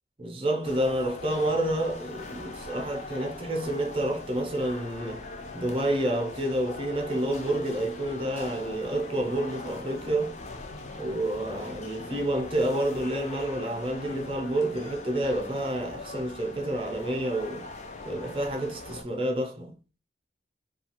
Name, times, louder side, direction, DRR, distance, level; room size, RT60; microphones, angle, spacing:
voice 1, 0.2-5.2 5.5-10.4 11.0-17.7 18.0-19.7, right 1 dB, 30° right, 0.6 m, -29 dB
sound 1, 0.6-19.0, left 3 dB, 40° left, 0.4 m, -41 dB
2.7 x 2.4 x 2.9 m
head